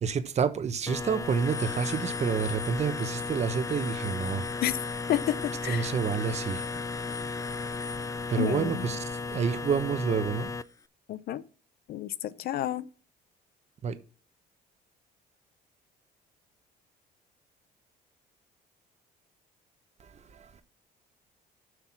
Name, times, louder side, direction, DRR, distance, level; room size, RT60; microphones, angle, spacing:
voice 1, 0.0-4.4 5.6-6.6 8.3-10.5 13.8-14.0 20.0-20.6, right 6 dB, 40° right, 1.1 m, -29 dB
sound 1, 0.9-10.6, left 4 dB, 20° left, 0.4 m, -34 dB
voice 2, 5.1-5.9 8.4-8.9 11.1-11.4 11.9-12.9, left 13 dB, 65° left, 0.7 m, -30 dB
8.0 x 5.8 x 5.9 m
cardioid pair, 110°, 17 cm